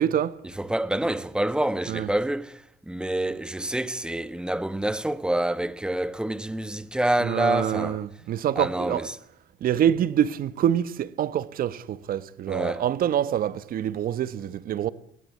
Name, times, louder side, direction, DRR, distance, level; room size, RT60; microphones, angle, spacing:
voice 1, 0.0-0.4 1.9-2.1 7.2-9.1 9.6-14.9, right 10 dB, 60° right, 1.2 m, -26 dB
voice 2, 0.6-8.0 8.5-9.1 12.5-12.8, right 1 dB, 5° right, 1.3 m, -27 dB
22.0 x 16.5 x 8.4 m
cardioid pair, 110°, 17 cm